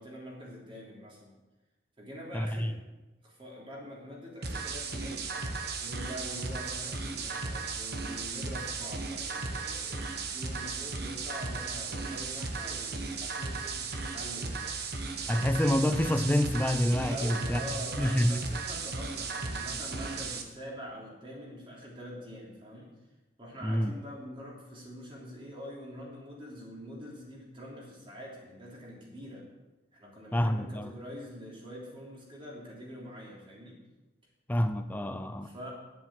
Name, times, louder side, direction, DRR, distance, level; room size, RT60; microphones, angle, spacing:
voice 1, 0.0-1.3 2.0-2.8 3.2-5.3 5.8-14.7 17.1-22.9 23.4-29.4 29.9-33.8 35.4-35.7, equal, 25° right, 3.2 m, -45 dB
voice 2, 2.3-2.7 15.3-17.7 18.0-18.5 23.6-23.9 30.3-30.9 34.5-35.5, equal, 10° left, 0.4 m, -27 dB
sound 1, 4.4-20.4, right 4 dB, 50° right, 1.2 m, -36 dB
10.5 x 7.7 x 7.5 m
head